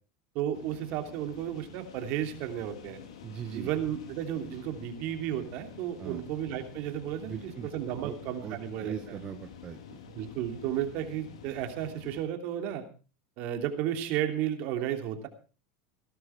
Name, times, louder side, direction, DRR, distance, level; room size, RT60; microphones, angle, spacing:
voice 1, 0.3-3.0 3.5-9.2 10.1-12.8 13.4-15.3, right 11 dB, 55° right, 6 dB, 3.0 m, -33 dB
sound 1, 0.5-12.2, left 8 dB, 90° left, 3.2 m, -48 dB
voice 2, 3.2-3.7 6.0-6.2 7.2-7.7 8.0-8.1 8.4-10.0, right 9 dB, 35° right, 6 dB, 1.3 m, -39 dB
17.5 x 12.5 x 4.7 m, 0.36 s
supercardioid pair, 125°, 3 cm